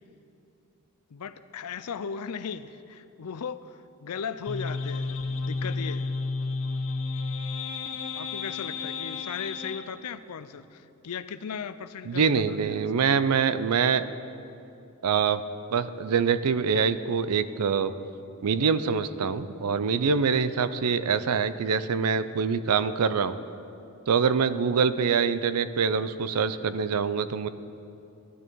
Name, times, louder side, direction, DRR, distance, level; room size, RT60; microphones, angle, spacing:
voice 1, 1.1-6.1 8.1-12.6, left 6 dB, 90° left, 14 dB, 0.5 m, -37 dB
sound 1, 4.5-9.9, left 3 dB, 65° left, 0.8 m, -32 dB
voice 2, 12.1-14.0 15.0-15.4 15.7-17.9 18.4-23.4 24.1-27.5, right 6 dB, 85° right, 14 dB, 0.5 m, -25 dB
13.5 x 12.5 x 4.6 m, 2.7 s
head